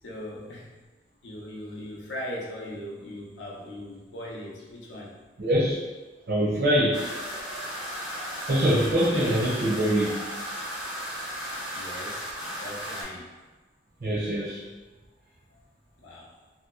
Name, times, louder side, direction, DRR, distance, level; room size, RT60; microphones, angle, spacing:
voice 1, 0.0-0.7 1.2-5.2 11.7-13.3 16.0-16.3, left 1 dB, 80° left, -3 dB, 0.6 m, -39 dB
voice 2, 5.4-5.8 6.3-7.1 8.5-10.3 14.0-14.6, equal, 55° right, -6 dB, 0.6 m, -24 dB
sound 1, 6.9-13.0, equal, 5° right, 0.5 m, -35 dB
2.8 x 2.1 x 2.3 m, 1.2 s
head